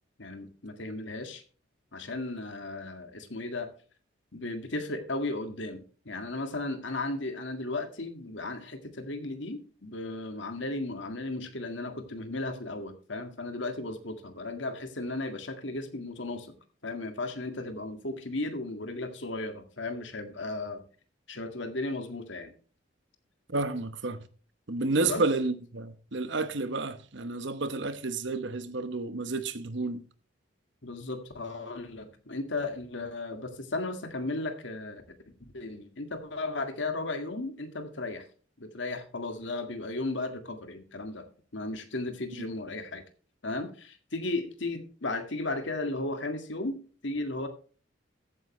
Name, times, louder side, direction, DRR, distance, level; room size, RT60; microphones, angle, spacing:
voice 1, 0.2-1.4 1.9-3.7 4.3-16.5 16.8-20.8 21.3-22.5 25.0-25.3 30.8-35.0 35.5-38.3 38.6-41.3 41.5-43.0 43.4-46.8 47.0-47.5, left 2 dB, 70° left, 1.9 m, -35 dB
voice 2, 23.5-24.3 24.7-30.0, right 3 dB, 65° right, 1.0 m, -30 dB
14.5 x 9.1 x 3.2 m
head